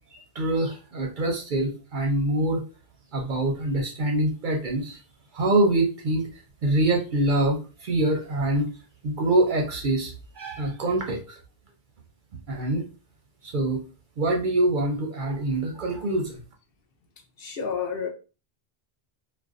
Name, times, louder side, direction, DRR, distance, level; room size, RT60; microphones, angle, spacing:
voice 1, 0.1-2.6 3.1-5.0 5.3-6.3 6.6-8.7 9.0-11.4 12.5-12.8 13.4-13.8 14.2-16.4, right 2 dB, 60° right, 1 dB, 0.6 m, -25 dB
voice 2, 17.4-18.1, left 6 dB, 65° left, 3 dB, 0.7 m, -30 dB
2.5 x 2.1 x 2.4 m, 0.32 s
omnidirectional pair, 1.1 m